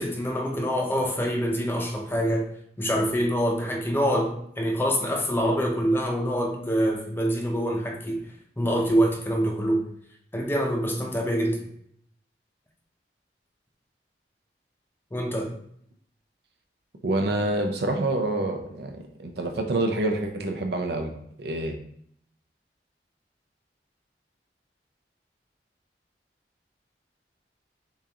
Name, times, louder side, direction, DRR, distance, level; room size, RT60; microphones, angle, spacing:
voice 1, 0.0-2.5 2.8-8.3 8.6-9.8 10.3-11.6 15.1-15.5, equal, 15° left, 1 dB, 0.6 m, -25 dB
voice 2, 17.0-21.1 21.4-21.8, right 2 dB, 65° right, 4 dB, 0.6 m, -27 dB
6.9 x 2.5 x 2.9 m, 0.69 s
head